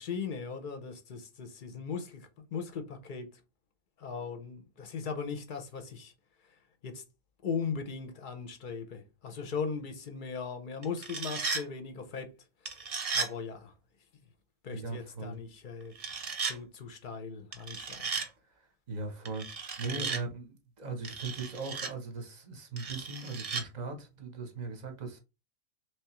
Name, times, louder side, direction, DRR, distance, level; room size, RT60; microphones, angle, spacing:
voice 1, 0.0-3.3 4.0-6.1 6.8-7.0 7.4-12.3 13.1-13.7 14.6-15.9 16.4-18.1 19.8-20.2, left 5 dB, 50° left, 0.6 m, -38 dB
sound 1, 10.8-11.6 12.7-13.3 16.0-16.6 17.5-18.3 19.3-20.2 21.0-21.9 22.8-23.6, right 5 dB, 60° right, 0.3 m, -35 dB
voice 2, 14.7-15.3 18.6-19.5 19.8-25.2, right 4 dB, 40° right, 0.7 m, -39 dB
3.4 x 3.2 x 2.9 m
omnidirectional pair, 1.4 m